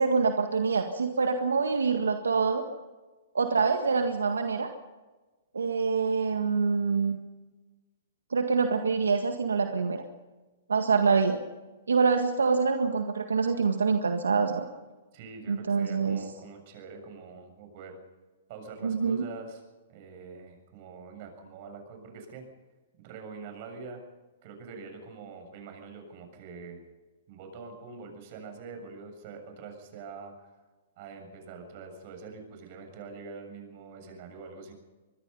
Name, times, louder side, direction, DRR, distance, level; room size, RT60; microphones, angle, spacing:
voice 1, 0.0-2.6 3.4-4.7 5.5-7.2 8.3-10.0 10.7-11.4 11.9-14.7 15.5-16.2 18.8-19.3, right 5 dB, 90° right, 5 dB, 1.7 m, -25 dB
voice 2, 15.1-18.0 18.5-19.6 19.9-22.4 23.0-24.0 24.4-26.8 27.3-30.5 31.0-34.7, right 4 dB, 50° right, 5 dB, 7.3 m, -44 dB
25.0 x 21.0 x 5.5 m, 1.2 s
hypercardioid pair, 125°, 0 cm